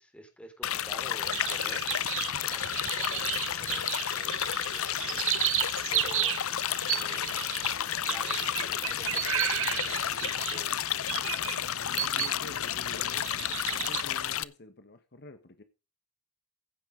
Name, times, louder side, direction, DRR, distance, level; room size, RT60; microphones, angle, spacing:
voice 1, 0.0-2.2 2.5-6.4 6.8-7.7 8.1-11.0, equal, 5° left, 3.4 m, -50 dB
sound 1, 0.6-14.4, left 10 dB, 65° left, 0.7 m, -31 dB
sound 2, 1.2-12.4 12.8-14.0, right 13 dB, 60° right, 0.9 m, -33 dB
voice 2, 12.0-13.3 13.7-15.6, left 2 dB, 50° left, 1.3 m, -48 dB
15.5 x 7.5 x 5.1 m
head